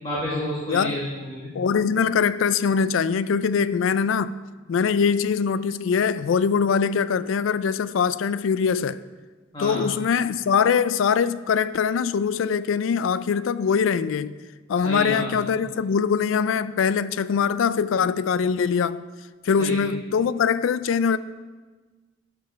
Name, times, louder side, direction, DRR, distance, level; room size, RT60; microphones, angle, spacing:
voice 1, 0.0-1.5 9.5-9.8 14.8-15.3 19.6-19.8, left 1 dB, 25° left, 1.8 m, -29 dB
voice 2, 0.7-1.0 1.5-4.3 4.7-9.0 9.6-14.4 14.7-19.1 19.4-21.2, left 6 dB, 80° left, 0.4 m, -22 dB
12.0 x 5.1 x 5.7 m
head